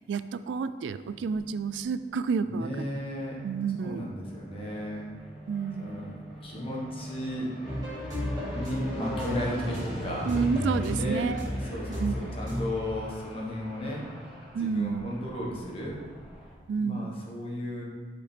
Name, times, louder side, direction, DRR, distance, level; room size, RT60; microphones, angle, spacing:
voice 1, 0.1-2.8 3.4-4.1 5.5-6.2 10.2-11.5 12.0-12.1 14.5-15.0 16.7-17.1, right 5 dB, 80° right, 12 dB, 0.3 m, -30 dB
sound 1, 1.0-1.8 2.5-16.6, equal, 5° right, 2.1 m, -41 dB
voice 2, 2.4-3.4 3.8-5.1 5.8-6.1 6.4-7.5 8.4-10.3 10.9-16.0 16.8-17.8, equal, 30° left, -3 dB, 1.4 m, -35 dB
sound 2, 7.6-12.7, equal, 20° right, 2.2 m, -34 dB
8.4 x 5.1 x 3.4 m, 1.5 s
head